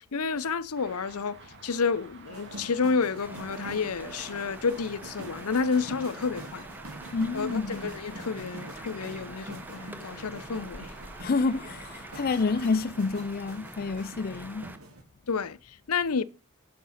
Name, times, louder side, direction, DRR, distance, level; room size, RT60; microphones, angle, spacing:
voice 1, 0.0-6.7 7.3-10.9 15.3-16.2, left 5 dB, 80° left, 0.7 m, -30 dB
Traffic noise roadway noise, 0.7-12.8, right 3 dB, 55° right, 2.3 m, -50 dB
sound 1, 2.2-15.0, right 2 dB, 75° right, 3.5 m, -45 dB
sound 2, 3.2-14.8, right 1 dB, 10° right, 0.9 m, -46 dB
voice 2, 7.1-7.9 11.2-14.7, left 4 dB, 45° left, 0.5 m, -28 dB
10.5 x 6.7 x 5.7 m
head